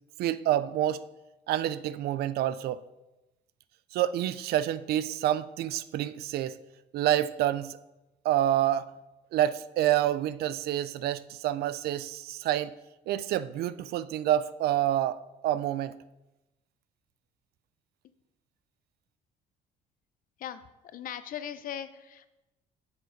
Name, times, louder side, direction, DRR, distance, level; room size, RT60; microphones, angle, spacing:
voice 1, 0.2-1.0 1.5-2.8 3.9-6.6 6.9-7.8 8.2-8.9 9.3-12.7 13.1-15.9, right 12 dB, 70° right, 16 dB, 0.4 m, -28 dB
voice 2, 20.4-22.3, left 10 dB, 55° left, 13 dB, 0.6 m, -39 dB
7.0 x 6.7 x 4.5 m, 1.0 s
cardioid pair, 110°, 17 cm